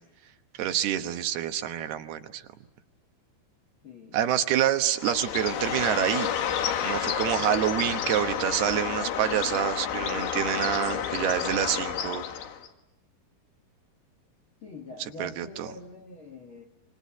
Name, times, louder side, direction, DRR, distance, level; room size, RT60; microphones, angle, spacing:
voice 1, 0.6-2.4 4.1-6.3 6.8-12.2 15.2-15.7, right 11 dB, 75° right, 8 dB, 3.1 m, -27 dB
voice 2, 3.8-4.2 14.6-16.6, left 2 dB, 55° left, 3 dB, 1.5 m, -44 dB
Bird, 4.9-12.7, left 9 dB, 80° left, 3.6 m, -30 dB
27.5 x 25.0 x 8.4 m, 0.86 s
omnidirectional pair, 4.6 m